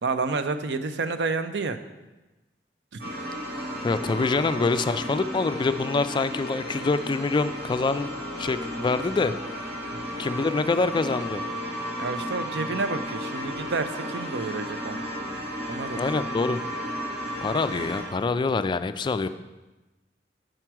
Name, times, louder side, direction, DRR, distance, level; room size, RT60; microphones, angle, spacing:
voice 1, 0.0-1.8 2.9-3.0 12.0-15.0 15.7-16.2, right 4 dB, 70° right, 10 dB, 0.5 m, -30 dB
sound 1, 3.0-18.1, equal, 90° right, 2.0 m, -34 dB
voice 2, 3.8-8.1 8.4-9.3 10.2-11.4 15.9-16.6 17.4-19.3, left 3 dB, 25° left, 11 dB, 0.3 m, -25 dB
7.8 x 4.5 x 6.0 m, 1.1 s
head